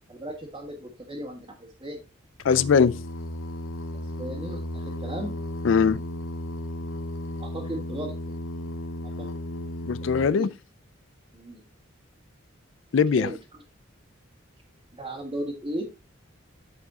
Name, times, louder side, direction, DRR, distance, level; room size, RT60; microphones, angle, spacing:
voice 1, 0.1-2.0 3.9-5.4 7.4-8.3 9.0-9.3 10.2-10.5 11.3-11.6 13.2-13.6 14.9-15.8, right 1 dB, 25° right, 1.7 m, -36 dB
Singing, 2.4-10.3, left 1 dB, 90° left, 0.8 m, -34 dB
voice 2, 2.4-3.0 5.6-6.0 9.9-10.5 12.9-13.3, left 6 dB, 70° left, 0.4 m, -20 dB
13.5 x 4.7 x 2.8 m
head